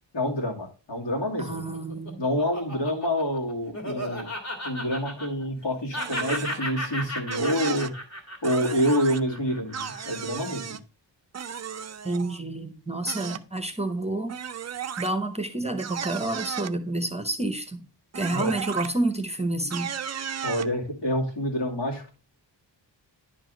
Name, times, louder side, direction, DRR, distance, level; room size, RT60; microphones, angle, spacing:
voice 1, 0.1-1.6 2.2-4.3 4.6-7.9 8.4-10.8 18.3-18.6 20.4-22.1, equal, 70° left, 2.5 m, -27 dB
voice 2, 1.4-2.2 12.0-14.4 15.0-17.8 18.1-19.9, right 2 dB, 15° right, 0.8 m, -29 dB
Laughter, 1.6-5.6 5.9-10.4, equal, 40° left, 1.9 m, -35 dB
sound 1, 6.0-6.6 7.3-7.9 8.4-9.2 9.7-10.8 11.3-12.4 13.1-13.4 14.3-15.1 15.8-16.7 18.1-18.9 19.7-20.7, right 8 dB, 40° right, 0.4 m, -35 dB
10.0 x 4.9 x 3.8 m
wide cardioid pair, 130°, 44 cm